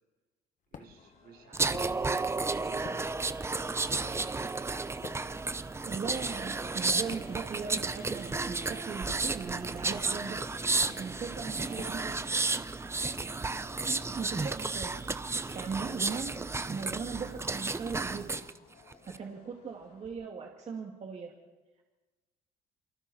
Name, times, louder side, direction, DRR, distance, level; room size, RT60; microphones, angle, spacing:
sound 1, 0.7-1.1 1.7-2.4 2.6-7.8 8.0-8.3 9.1-9.6 9.9-12.1, left 7 dB, 50° left, 1.8 m, -50 dB
voice 1, 0.7-3.1 3.5-4.7, right 6 dB, 65° right, 1 dB, 5.1 m, -56 dB
sound 2, 1.0-20.1, left 5 dB, 75° left, 6.6 m, -60 dB
sound 3, 1.5-18.5 18.9-19.2, right 3 dB, 15° right, 0.7 m, -33 dB
voice 2, 5.9-10.5 11.0-12.3 13.8-15.0 15.5-18.4 19.1-21.3, right 5 dB, 40° right, 0 dB, 2.2 m, -39 dB
28.5 x 24.0 x 4.3 m, 1.2 s
cardioid pair, 110°, 17 cm